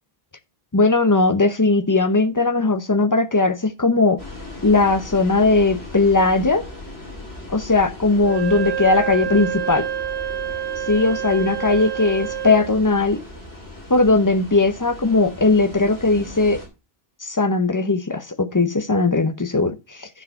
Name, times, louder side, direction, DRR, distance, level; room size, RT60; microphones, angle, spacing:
voice 1, 0.7-4.2 4.6-6.6 7.5-9.9 10.9-13.2 13.9-16.6 17.2-20.1, left 3 dB, 20° left, 0.7 m, -18 dB
sound 1, 4.2-16.7, left 2 dB, 90° left, 3.6 m, -38 dB
Wind instrument woodwind instrument, 8.2-12.7, right 10 dB, 85° right, 1.5 m, -27 dB
11.5 x 4.7 x 5.6 m
omnidirectional pair, 1.0 m